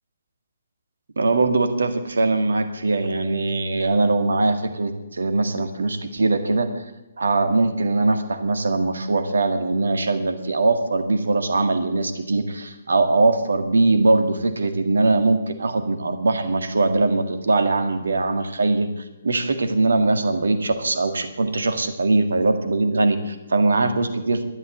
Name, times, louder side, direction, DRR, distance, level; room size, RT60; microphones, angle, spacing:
voice 1, 1.2-6.8 7.2-18.9 19.2-24.4, right 3 dB, 65° right, 8 dB, 1.7 m, -21 dB
12.5 x 11.0 x 7.8 m, 1.0 s
figure-of-eight pair, 130°, 0 cm